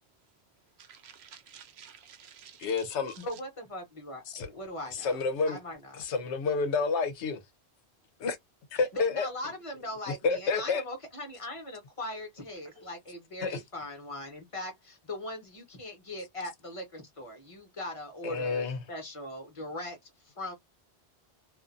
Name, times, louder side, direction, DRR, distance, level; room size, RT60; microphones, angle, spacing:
voice 1, 0.8-2.7 3.1-3.2, right 8 dB, 75° right, 0.9 m, -52 dB
voice 2, 2.6-3.1 4.3-4.5 5.0-5.6 6.0-7.4 8.2-8.4 8.7-9.3 10.2-10.8 13.4-13.6 18.2-18.8, left 4 dB, 90° left, 1.0 m, -29 dB
voice 3, 3.2-5.2 5.4-6.1 8.7-20.5, left 1 dB, 30° left, 1.0 m, -40 dB
2.5 x 2.4 x 2.4 m
omnidirectional pair, 1.1 m